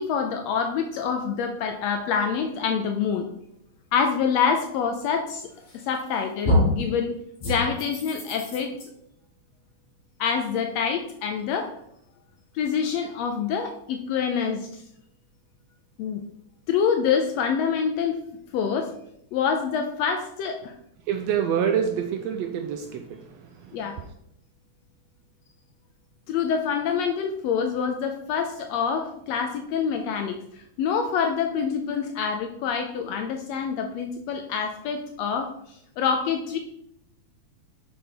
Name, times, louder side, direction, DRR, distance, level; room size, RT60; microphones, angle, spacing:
voice 1, 0.0-3.3 3.9-5.5 5.9-7.1 7.5-8.8 10.2-11.8 12.5-14.8 16.0-16.2 16.7-18.2 18.5-18.9 19.3-20.7 23.7-24.0 26.3-36.6, left 6 dB, 80° left, 4 dB, 1.5 m, -26 dB
sound 1, 5.7-6.1 6.4-6.9 7.4-8.8, left 1 dB, 55° left, 2.9 m, -25 dB
voice 2, 21.1-24.1, right 8 dB, 80° right, 5 dB, 1.5 m, -27 dB
6.3 x 4.4 x 5.1 m, 0.77 s
omnidirectional pair, 3.4 m